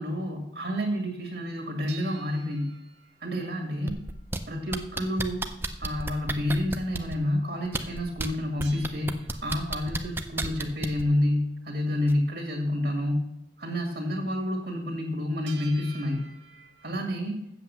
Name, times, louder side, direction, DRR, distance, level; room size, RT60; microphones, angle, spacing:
voice 1, 0.0-2.7 3.2-4.0 4.5-5.4 5.8-13.3 13.6-16.2 16.8-17.4, left 1 dB, 60° right, 2 dB, 2.1 m, -29 dB
sound 1, 1.9-4.3 8.6-10.4 15.5-17.0, right 7 dB, 85° right, 2.0 m, -50 dB
sound 2, 3.9-4.4 4.7-7.2 7.7-8.3 8.6-11.0 12.1-12.2, right 2 dB, 10° right, 0.5 m, -31 dB
7.9 x 7.6 x 6.9 m, 0.80 s
head